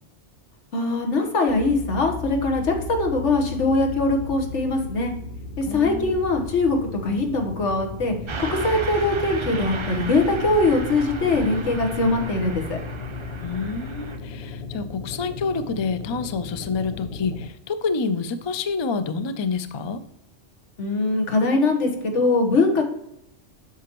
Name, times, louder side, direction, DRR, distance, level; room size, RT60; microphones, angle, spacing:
voice 1, 0.7-5.1 5.6-6.8 7.0-12.8 20.8-22.8, left 3 dB, 85° left, 3 dB, 1.5 m, -22 dB
sound 1, 1.5-17.5, left 3 dB, 65° left, 1.0 m, -36 dB
voice 2, 5.7-6.2 13.4-20.0, left 4 dB, 45° left, 10 dB, 0.3 m, -28 dB
Car passing by / Truck, 8.3-14.2, right 4 dB, 35° right, 0.5 m, -34 dB
8.3 x 6.0 x 3.0 m, 0.79 s
omnidirectional pair, 1.2 m